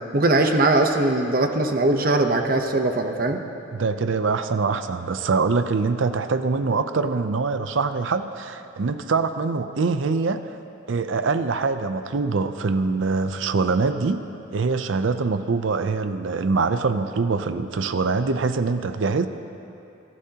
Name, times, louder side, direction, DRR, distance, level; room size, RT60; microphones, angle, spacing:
voice 1, 0.1-3.4, right 2 dB, 45° right, 5 dB, 0.8 m, -20 dB
voice 2, 3.7-10.6 10.9-14.2 14.5-19.3, right 4 dB, 75° right, 10 dB, 0.5 m, -24 dB
28.5 x 12.0 x 2.9 m, 2.7 s
head